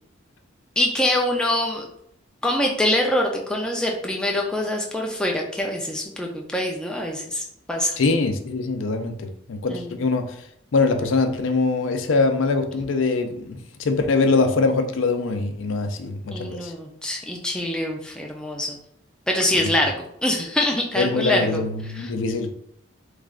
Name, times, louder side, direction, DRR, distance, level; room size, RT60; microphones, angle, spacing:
voice 1, 0.8-1.8 2.4-8.0 9.7-9.9 16.3-18.8 19.3-19.9 20.2-21.6 21.9-22.1, left 1 dB, 5° left, 0 dB, 0.4 m, -24 dB
voice 2, 8.0-10.3 10.7-16.7 19.5-19.7 21.0-22.5, left 3 dB, 85° left, 6 dB, 0.4 m, -23 dB
3.1 x 2.4 x 3.6 m, 0.71 s
head